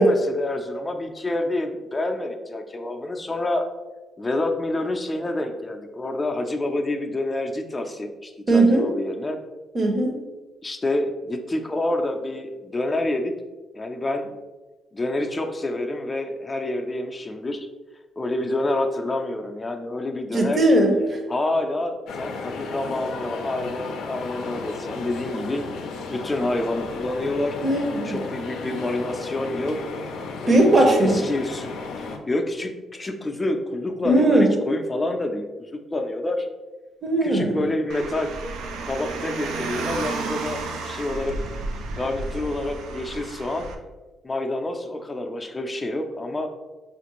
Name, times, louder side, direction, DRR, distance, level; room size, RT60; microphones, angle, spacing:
voice 1, 0.0-3.7 4.2-9.4 10.6-13.3 13.7-14.3 14.9-17.7 18.2-20.7 21.3-25.6 26.1-27.6 28.0-29.8 30.4-31.7 32.0-36.5 37.2-38.3 38.9-41.4 41.9-43.7 44.2-46.5, left 2 dB, 20° left, 4 dB, 0.4 m, -28 dB
voice 2, 8.5-8.9 9.7-10.2 20.3-21.2 27.6-28.2 30.5-31.2 34.0-34.5 37.0-37.5, right 1 dB, 40° right, 2 dB, 0.7 m, -18 dB
sound 1, 22.1-32.2, left 4 dB, 80° left, 0.4 m, -34 dB
Car, 37.9-43.7, right 3 dB, 85° right, 0.4 m, -32 dB
4.2 x 2.5 x 3.0 m, 1.2 s
cardioid pair, 90°, 0 cm